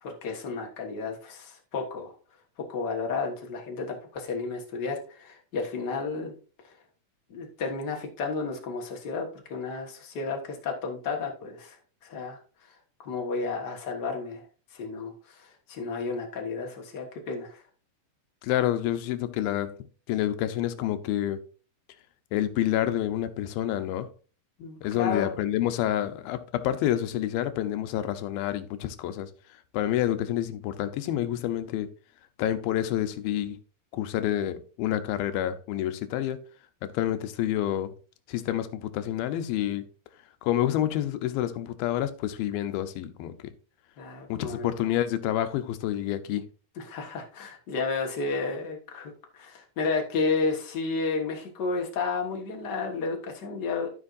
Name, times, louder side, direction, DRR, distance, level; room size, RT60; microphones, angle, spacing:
voice 1, 0.0-2.1 2.7-6.3 6.6-6.7 7.3-11.8 12.0-12.7 13.0-14.4 14.7-17.6 24.6-25.3 44.0-44.7 46.8-53.9, left 4 dB, 65° left, 1.0 m, -32 dB
voice 2, 18.4-19.8 20.1-21.4 22.3-24.1 24.8-29.3 29.7-31.9 32.4-33.6 33.9-36.4 36.8-37.9 38.3-39.9 40.4-43.5 44.3-46.4, left 12 dB, 85° left, 2.6 m, -28 dB
14.0 x 5.3 x 2.5 m
omnidirectional pair, 4.2 m